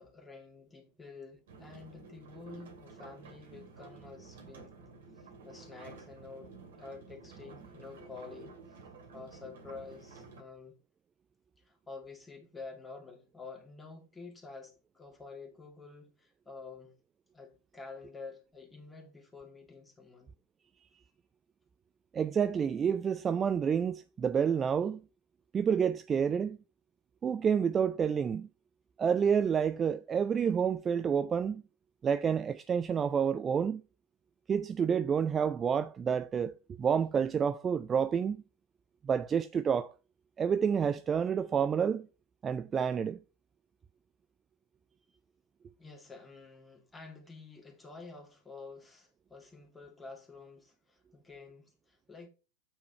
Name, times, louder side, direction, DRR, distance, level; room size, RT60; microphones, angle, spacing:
voice 1, 0.0-4.7 5.2-8.8 9.1-10.8 11.6-16.9 17.3-20.3 45.8-52.3, left 4 dB, 10° left, 2.6 m, -49 dB
sound 1, 1.5-10.4, right 4 dB, 60° right, 2.4 m, -52 dB
voice 2, 22.1-25.0 25.5-26.6 27.2-28.5 29.0-31.6 32.0-33.8 34.5-38.4 39.0-39.9 40.4-42.1 42.4-43.2, right 7 dB, 20° right, 0.4 m, -29 dB
9.2 x 4.8 x 4.3 m
figure-of-eight pair, 90°, 0 cm